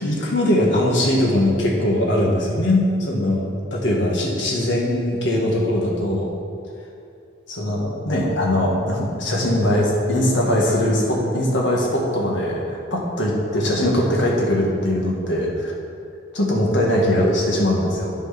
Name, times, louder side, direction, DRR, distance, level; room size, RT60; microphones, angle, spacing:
voice 1, 0.0-3.4 3.7-6.3 7.5-15.7 16.3-18.1, left 1 dB, 70° left, -2 dB, 1.7 m, -21 dB
10.5 x 4.6 x 5.9 m, 2.5 s
head